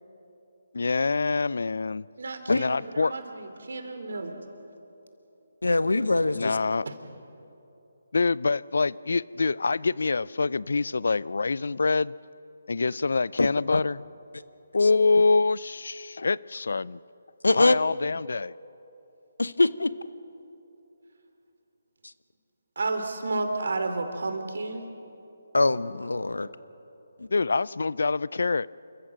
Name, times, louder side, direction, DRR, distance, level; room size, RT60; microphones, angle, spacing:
voice 1, 0.7-2.0 2.5-3.1 6.4-6.8 8.1-12.1 12.7-14.0 14.7-17.0 17.6-18.5 27.3-28.7, left 4 dB, 70° left, 22 dB, 0.4 m, -25 dB
voice 2, 2.2-4.5 6.9-7.0 22.8-24.9, right 3 dB, 70° right, 7 dB, 2.8 m, -32 dB
voice 3, 5.6-6.6 13.4-13.8 14.8-14.9 17.4-17.8 19.4-19.9 25.5-26.5 27.2-27.3, left 2 dB, 90° left, 16 dB, 0.8 m, -23 dB
28.0 x 14.5 x 7.4 m, 2.9 s
figure-of-eight pair, 155°, 0 cm